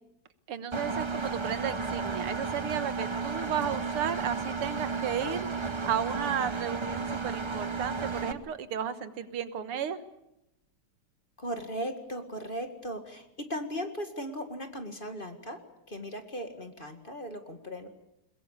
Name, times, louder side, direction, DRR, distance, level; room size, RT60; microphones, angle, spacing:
voice 1, 0.5-5.5 5.8-10.0, right 8 dB, 85° right, 12 dB, 2.3 m, -33 dB
Engine, 0.7-8.3, right 4 dB, 50° right, 0.3 m, -33 dB
voice 2, 11.4-15.6 15.9-17.9, equal, 25° left, 7 dB, 2.0 m, -37 dB
22.0 x 21.5 x 8.4 m, 0.86 s
omnidirectional pair, 2.4 m